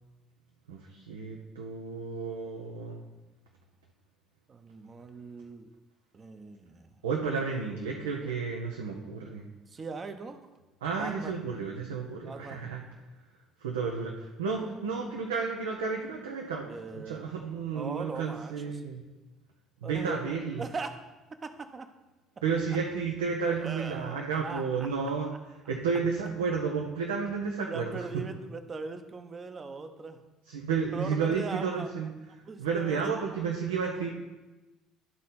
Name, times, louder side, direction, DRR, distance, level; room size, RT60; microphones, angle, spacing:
voice 1, 0.7-3.0 7.0-9.5 10.8-12.8 13.6-19.0 19.8-20.6 22.4-25.3 25.7-28.1 30.5-32.1 32.6-34.1, right 5 dB, 80° right, 0 dB, 0.7 m, -32 dB
voice 2, 4.5-5.7 6.1-7.0 8.2-8.3 9.7-10.4 11.0-11.4 12.2-12.6 14.6-14.7 16.7-17.3 17.7-18.8 19.8-20.2 20.6-21.0 21.4-21.9 23.6-24.9 27.7-30.2 30.9-31.9 32.3-33.3, right 4 dB, 35° right, 7 dB, 0.9 m, -40 dB
12.5 x 4.2 x 4.2 m, 1.1 s
figure-of-eight pair, 55°, 0 cm